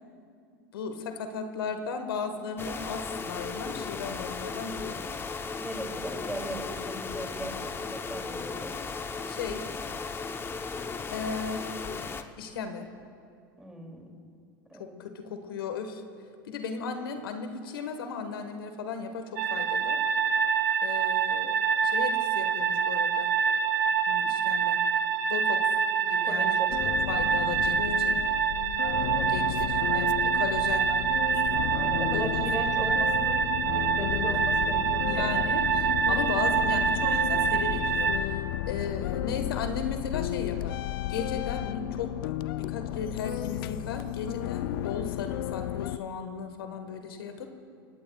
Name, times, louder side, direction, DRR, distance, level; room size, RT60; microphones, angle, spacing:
voice 1, 0.7-4.9 9.3-9.7 11.1-11.7 12.4-12.9 14.7-16.0 16.4-20.0 20.8-21.6 21.8-23.3 24.1-24.8 25.3-25.7 26.0-26.6 27.1-28.2 29.3-30.9 32.1-32.2 32.8-33.0 34.3-34.4 35.0-40.8 41.1-42.1 42.6-47.5, left 5 dB, 90° left, 6 dB, 1.4 m, -36 dB
sound 1, 2.6-12.2, left 4 dB, 20° left, 0.8 m, -36 dB
voice 2, 5.6-8.7 13.6-14.2 14.7-14.9 26.2-26.7 29.1-29.3 31.7-35.3, right 1 dB, 5° right, 1 dB, 2.6 m, -38 dB
sound 2, 19.4-38.2, right 7 dB, 70° right, 1.2 m, -26 dB
sound 3, 26.7-46.0, left 14 dB, 70° left, 0.5 m, -33 dB
26.0 x 18.5 x 2.3 m, 2.3 s
hypercardioid pair, 110°, 12 cm